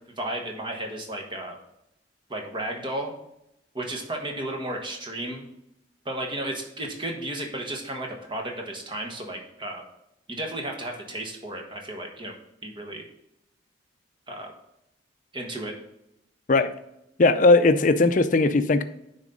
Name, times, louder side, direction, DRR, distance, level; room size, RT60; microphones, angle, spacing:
voice 1, 0.2-1.6 2.3-3.1 3.7-5.4 6.0-9.8 10.3-12.3 12.6-13.0 14.3-14.5 15.3-15.8, right 1 dB, 25° right, 2 dB, 1.3 m, -33 dB
voice 2, 17.2-18.8, left 3 dB, 45° left, 11 dB, 0.5 m, -18 dB
9.7 x 4.1 x 3.8 m, 0.82 s
head